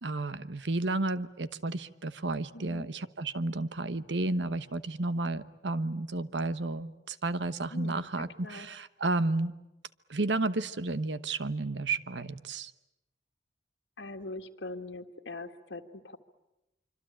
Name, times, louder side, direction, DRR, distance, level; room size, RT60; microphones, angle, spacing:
voice 1, 0.0-9.5 10.1-12.7, right 2 dB, 80° right, 14 dB, 1.1 m, -32 dB
voice 2, 2.5-2.9 7.7-8.7 14.0-16.2, left 2 dB, 85° left, 5 dB, 1.8 m, -42 dB
26.0 x 25.0 x 8.9 m, 0.93 s
head